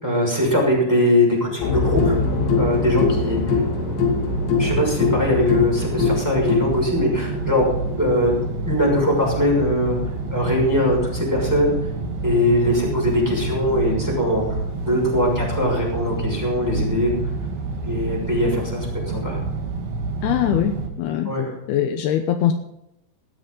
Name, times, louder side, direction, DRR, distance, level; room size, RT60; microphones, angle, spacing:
voice 1, 0.0-2.2 2.6-3.6 4.6-7.7 8.0-8.4 8.7-10.0 10.3-11.7 12.2-17.1 17.8-19.4 21.2-21.5, left 1 dB, 5° right, -2 dB, 5.4 m, -21 dB
sound 1, 1.6-13.4 14.8-14.9, left 5 dB, 65° left, 4.6 m, -25 dB
sound 2, 1.8-20.9, right 3 dB, 60° right, 3.5 m, -28 dB
voice 2, 20.2-21.3 21.7-22.5, left 10 dB, 85° left, 6 dB, 2.2 m, -22 dB
18.5 x 13.0 x 3.9 m, 0.86 s
omnidirectional pair, 5.7 m